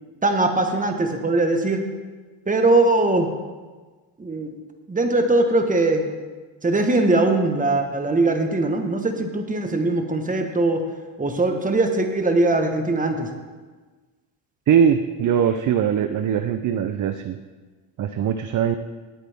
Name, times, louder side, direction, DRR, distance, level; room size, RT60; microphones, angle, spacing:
voice 1, 0.2-1.9 2.5-3.3 4.2-4.5 4.9-6.1 6.6-10.8 11.2-13.3, right 2 dB, 15° right, 5 dB, 1.4 m, -21 dB
voice 2, 14.7-17.4 18.0-18.8, right 8 dB, 40° right, 9 dB, 0.6 m, -21 dB
19.0 x 8.1 x 3.6 m, 1.3 s
cardioid pair, 115°, 49 cm